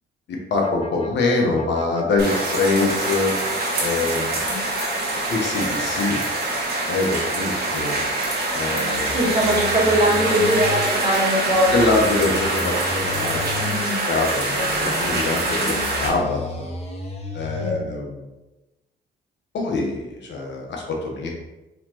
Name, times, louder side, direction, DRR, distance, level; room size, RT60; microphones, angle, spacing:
voice 1, 0.5-3.3 3.8-4.4 5.3-6.2 6.9-7.9 8.5-9.1 11.7-13.6 14.1-14.4 14.8-16.7 17.3-18.3 19.5-21.3, left 3 dB, 65° left, 0 dB, 1.0 m, -24 dB
sound 1, 0.6-8.3 8.6-10.8 11.3-13.8 14.3-17.7, left 3 dB, 30° left, 0.8 m, -35 dB
sound 2, 2.2-16.1, right 2 dB, 55° right, 1.2 m, -24 dB
voice 2, 2.6-3.0 4.5-4.6 9.1-12.1 13.6-14.0 14.5-14.9 17.6-17.8, right 1 dB, 30° right, -4 dB, 1.4 m, -22 dB
4.0 x 3.0 x 2.9 m, 1.0 s
cardioid pair, 90°, 20 cm